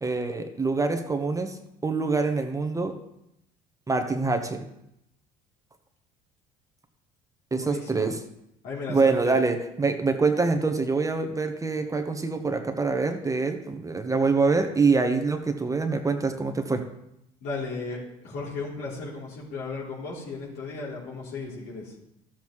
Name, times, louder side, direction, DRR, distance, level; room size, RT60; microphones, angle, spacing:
voice 1, 0.0-2.9 3.9-4.6 7.5-8.2 8.9-16.8, right 4 dB, 20° right, 5 dB, 1.2 m, -25 dB
voice 2, 7.6-8.1 8.6-9.4 17.4-21.9, left 4 dB, 70° left, -4 dB, 3.3 m, -35 dB
13.0 x 7.4 x 3.2 m, 0.80 s
hypercardioid pair, 60°, 17 cm